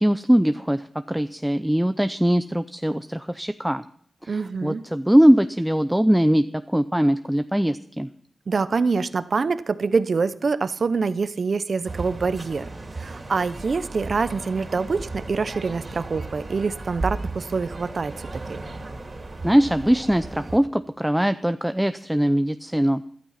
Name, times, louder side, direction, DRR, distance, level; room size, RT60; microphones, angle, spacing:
voice 1, 0.0-3.8 4.2-8.1 19.4-23.0, equal, 5° right, 10 dB, 0.5 m, -21 dB
voice 2, 4.3-4.8 8.5-12.7 13.0-18.6, right 4 dB, 60° right, 14 dB, 0.8 m, -25 dB
sound 1, 11.8-20.6, right 2 dB, 40° right, 2.8 m, -35 dB
13.0 x 12.5 x 5.8 m, 0.63 s
cardioid pair, 55°, 0 cm